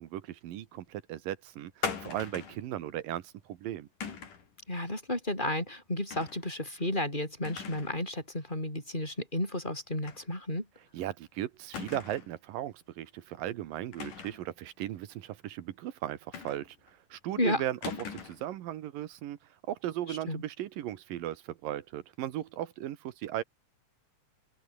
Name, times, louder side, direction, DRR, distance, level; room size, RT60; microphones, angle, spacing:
voice 1, 0.0-3.9 10.9-19.4 19.7-23.4, right 13 dB, 85° right, 3.0 m, -37 dB
sound 1, 1.8-2.6 4.0-4.5 6.1-6.4 6.8-6.9 7.4-8.0 8.3-8.4 10.0-10.2 10.6-10.7 11.7-12.4 13.9-14.5 16.3-16.9 17.8-18.5, left 6 dB, 70° left, 5.1 m, -39 dB
voice 2, 4.7-10.7 17.4-17.6 20.1-20.4, left 1 dB, 15° left, 7.9 m, -32 dB
open air
omnidirectional pair, 3.9 m